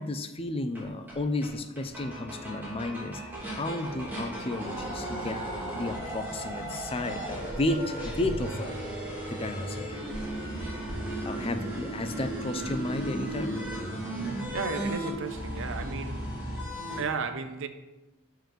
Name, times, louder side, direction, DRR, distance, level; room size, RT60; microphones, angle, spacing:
voice 1, 0.0-3.2 3.5-5.4 5.7-8.9 9.3-9.9 11.2-13.6, left 2 dB, 25° left, 0.5 m, -33 dB
sound 1, 0.7-0.8 1.1-1.2 1.4-1.5 1.8-17.0, right 1 dB, 10° right, 2.6 m, -35 dB
voice 2, 14.5-16.3 17.0-17.7, right 5 dB, 60° right, 0.6 m, -34 dB
6.8 x 4.6 x 6.1 m
head